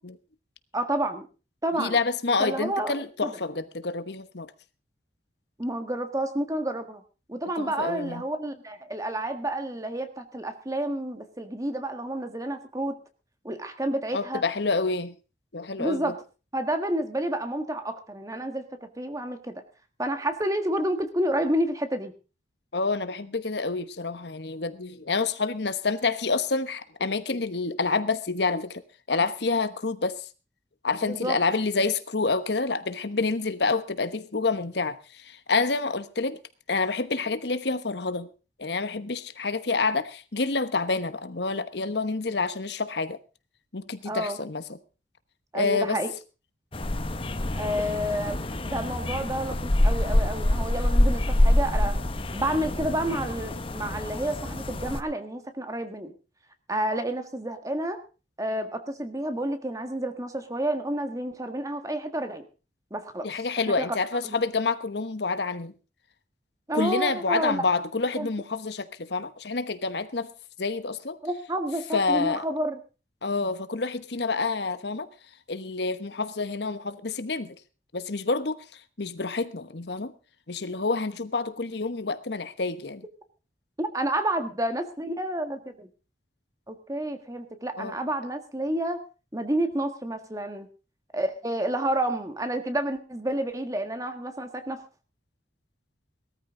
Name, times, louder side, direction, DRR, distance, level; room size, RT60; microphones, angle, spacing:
voice 1, 0.7-1.3 1.6-2.0 2.4-2.9 3.2-3.3 5.6-7.0 7.3-13.0 13.4-14.4 15.8-16.2 16.5-19.6 20.0-22.1 31.0-31.4 44.1-44.4 45.5-46.1 47.5-52.0 52.3-56.1 56.7-58.0 58.4-62.4 62.9-63.3 63.8-63.9 64.2-64.4 66.7-67.6 68.2-68.3 71.2-72.8 83.8-85.9 86.7-89.0 89.3-90.7 91.1-94.8, right 1 dB, 20° right, 1.7 m, -29 dB
voice 2, 1.7-4.5 7.6-8.2 14.1-15.1 15.5-16.1 22.7-28.8 29.1-30.3 30.8-36.4 36.7-38.3 38.6-43.2 43.7-44.8 45.5-46.0 63.2-65.8 66.7-70.3 70.6-71.2 71.9-72.4 73.2-75.1 75.5-77.6 77.9-80.1 80.5-83.0 87.8-87.9, left 4 dB, 65° left, 1.1 m, -28 dB
sound 1, 46.7-55.0, left 1 dB, 30° left, 0.9 m, -26 dB
18.5 x 13.5 x 3.8 m
head